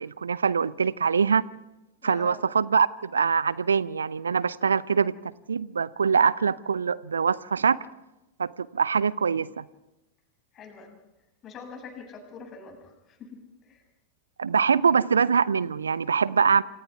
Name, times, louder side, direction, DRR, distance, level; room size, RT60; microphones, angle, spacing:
voice 1, 0.0-1.4 2.0-7.8 8.4-9.6 14.4-16.6, right 6 dB, 70° right, 0.7 m, -24 dB
voice 2, 2.0-2.4 10.5-11.0 11.4-13.8, left 5 dB, 30° left, 7.1 m, -44 dB
28.0 x 27.5 x 3.6 m
figure-of-eight pair, 90°, 0 cm